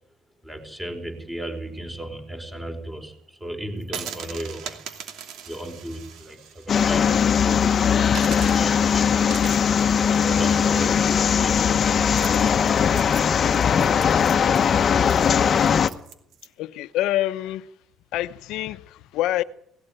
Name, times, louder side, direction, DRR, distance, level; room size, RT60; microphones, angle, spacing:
voice 1, 0.4-4.8 5.5-9.3 10.0-12.7, right 1 dB, 10° right, 4.7 m, -36 dB
sound 1, 3.8-7.2 7.6-7.7 8.1-16.5, right 8 dB, 65° right, 2.6 m, -40 dB
sound 2, 6.7-15.9, left 7 dB, 40° left, 1.1 m, -20 dB
voice 2, 16.6-17.7 18.1-19.4, left 14 dB, 75° left, 1.0 m, -26 dB
18.5 x 16.5 x 9.3 m
cardioid pair, 110°, 0 cm